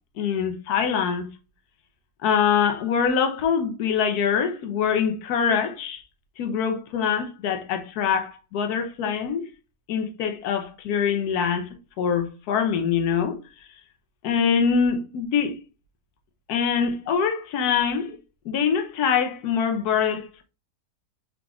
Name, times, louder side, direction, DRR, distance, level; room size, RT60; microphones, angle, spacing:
voice 1, 0.2-1.3 2.2-6.0 6.4-9.5 9.9-11.7 12.0-13.4 14.2-15.6 16.5-18.2 18.4-20.4, left 7 dB, 75° left, 1.2 m, -24 dB
4.6 x 3.8 x 2.4 m
omnidirectional pair, 1.7 m